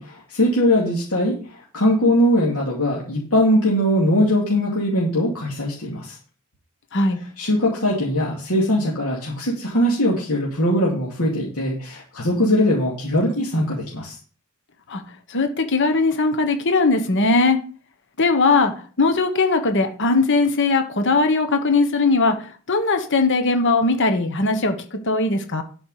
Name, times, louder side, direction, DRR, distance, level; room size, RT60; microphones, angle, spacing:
voice 1, 0.0-6.2 7.4-14.2, equal, 75° left, -4 dB, 2.5 m, -21 dB
voice 2, 15.3-17.6 18.2-18.7 19.0-25.6, left 3 dB, 55° left, 7 dB, 1.2 m, -19 dB
11.5 x 5.3 x 4.9 m, 0.41 s
head